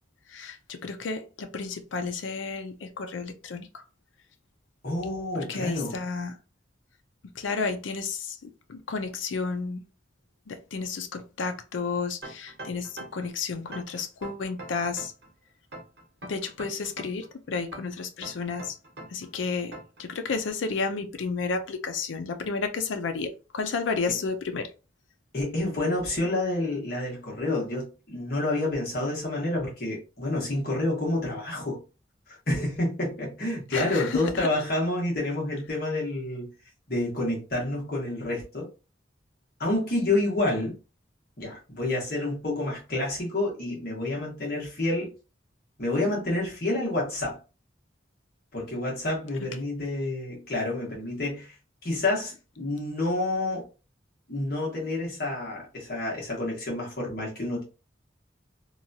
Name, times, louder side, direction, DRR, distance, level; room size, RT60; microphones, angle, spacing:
voice 1, 0.3-3.8 5.4-6.4 7.2-9.8 10.5-15.1 16.2-18.8 19.1-24.7 33.7-34.5 49.4-49.5, left 4 dB, 90° left, 0.5 m, -32 dB
voice 2, 4.8-6.0 25.3-31.8 32.3-36.5 36.9-38.7 39.6-40.8 41.4-45.1 45.8-47.4 48.5-51.5 51.8-53.7 54.3-57.6, left 2 dB, 50° left, 1.3 m, -29 dB
sound 1, 12.2-13.3 13.7-15.3 15.7-17.3 17.7-19.3 19.7-20.0, right 1 dB, 65° right, 1.1 m, -42 dB
2.9 x 2.3 x 2.6 m
head